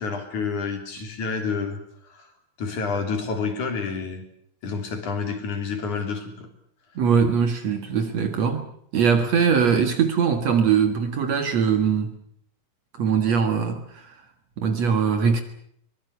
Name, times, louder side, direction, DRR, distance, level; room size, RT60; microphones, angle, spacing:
voice 1, 0.0-1.8 2.1-2.3 2.6-4.3 4.6-6.5, left 5 dB, 55° left, 4.6 m, -29 dB
voice 2, 7.0-12.2 13.0-14.1 14.6-15.4, right 6 dB, 55° right, 2.5 m, -21 dB
23.5 x 20.0 x 8.3 m
omnidirectional pair, 4.2 m